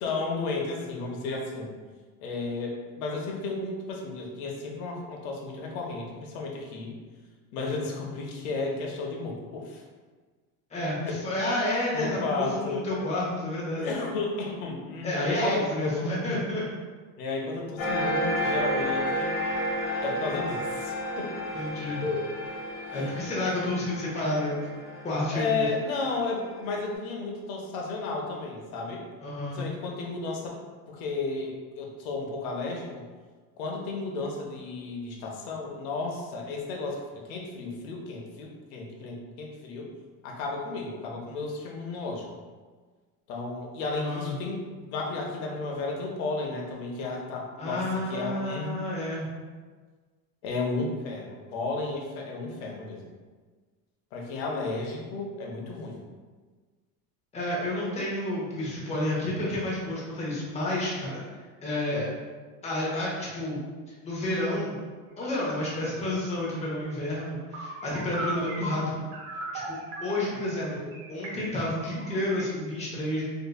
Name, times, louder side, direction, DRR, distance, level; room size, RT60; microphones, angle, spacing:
voice 1, 0.0-1.7 2.2-6.9 7.5-9.8 11.0-11.2 11.9-12.8 13.8-16.1 17.2-19.3 20.0-21.3 22.0-22.2 22.9-23.1 25.3-29.1 29.5-30.5 30.9-33.1 33.6-39.9 40.2-42.3 43.3-48.8 50.4-53.1 54.1-56.0 61.7-62.1, left 3 dB, 85° left, 0 dB, 0.8 m, -33 dB
voice 2, 10.7-13.9 15.0-16.6 21.5-22.1 22.9-24.6 25.0-25.7 29.2-29.6 44.0-44.3 47.6-49.3 57.3-61.2 61.6-62.1 62.6-63.6 64.0-64.8 65.2-69.0 69.5-73.3, left 1 dB, 15° left, -7 dB, 0.9 m, -30 dB
sound 1, 17.8-26.8, equal, 55° left, 1.1 m, -32 dB
sound 2, 65.1-65.4 65.6-72.4, right 2 dB, 50° right, 0.9 m, -38 dB
3.8 x 2.6 x 2.2 m, 1.4 s
supercardioid pair, 135°, 41 cm